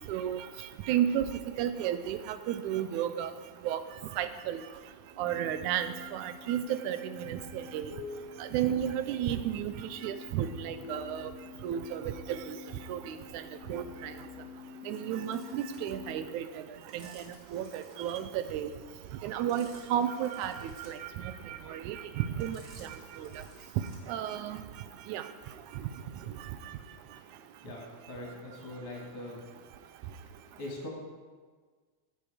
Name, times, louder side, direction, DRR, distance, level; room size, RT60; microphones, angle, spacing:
voice 1, 0.1-0.5 0.9-1.3 1.6-3.3 3.7-3.8 4.2-4.6 5.2-7.9 8.4-9.7 10.0-11.3 11.6-12.6 12.9-13.4 13.7-14.1 14.9-16.6 16.9-17.2 17.5-18.7 19.2-21.0 21.5-22.9 23.2-23.3 24.1-24.6 25.1-25.2, right 10 dB, 85° right, 11 dB, 2.1 m, -32 dB
sound 1, 5.1-16.3, left 7 dB, 75° left, 1.7 m, -48 dB
sound 2, 15.1-24.3, right 1 dB, 30° right, 2.5 m, -57 dB
voice 2, 27.6-29.4 30.6-30.9, left 1 dB, 50° left, -3 dB, 2.8 m, -41 dB
15.5 x 8.1 x 5.0 m, 1.5 s
omnidirectional pair, 3.4 m